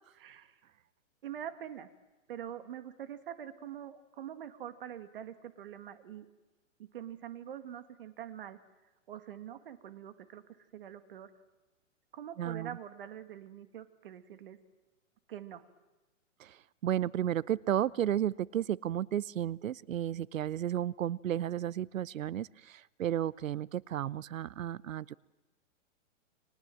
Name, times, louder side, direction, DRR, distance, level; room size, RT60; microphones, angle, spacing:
voice 1, 0.1-0.6 1.2-1.9 2.3-6.3 6.8-8.6 9.1-10.4 10.7-11.3 12.1-14.6 15.3-15.6, right 10 dB, 45° right, 10 dB, 2.0 m, -44 dB
voice 2, 12.4-12.8 16.4-16.5 16.8-25.1, right 11 dB, 80° right, 22 dB, 0.9 m, -33 dB
30.0 x 25.0 x 7.7 m, 1.1 s
hypercardioid pair, 175°, 39 cm